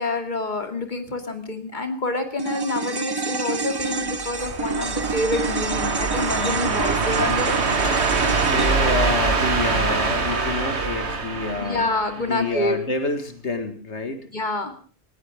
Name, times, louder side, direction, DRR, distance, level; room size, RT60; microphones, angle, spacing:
voice 1, 0.0-7.5 11.6-12.8 14.3-14.7, left 2 dB, 45° left, 6 dB, 2.8 m, -27 dB
sound 1, 2.4-10.9 11.1-11.2, right 4 dB, 25° right, 0.8 m, -30 dB
sound 2, 4.1-12.5, right 4 dB, 75° right, 2.0 m, -24 dB
voice 2, 8.0-11.9 12.2-14.3, left 3 dB, 85° left, 7 dB, 2.3 m, -28 dB
20.0 x 18.5 x 3.6 m, 0.43 s
omnidirectional pair, 1.1 m